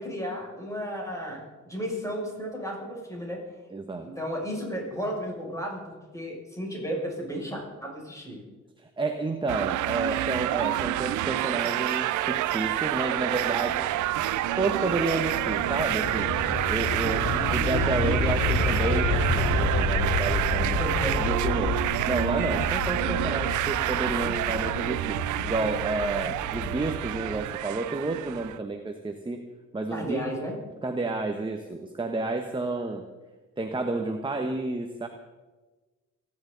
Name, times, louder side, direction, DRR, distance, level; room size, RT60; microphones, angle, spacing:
voice 1, 0.0-1.4 1.6-3.4 4.0-5.8 6.1-8.4 17.0-17.5 20.6-21.2 29.9-30.6, equal, 10° left, -2 dB, 6.5 m, -33 dB
voice 2, 3.7-4.1 8.8-13.8 14.6-16.3 16.7-17.2 17.5-20.8 21.2-21.7 22.1-25.2 25.4-29.4 29.7-30.2 30.8-33.0 33.6-35.1, right 3 dB, 15° right, 5 dB, 1.2 m, -30 dB
sound 1, 9.5-28.6, right 15 dB, 80° right, 0.6 m, -28 dB
sound 2, 11.9-27.4, left 3 dB, 70° left, 2.6 m, -30 dB
28.5 x 11.0 x 4.0 m, 1.2 s
cardioid pair, 90°, 30 cm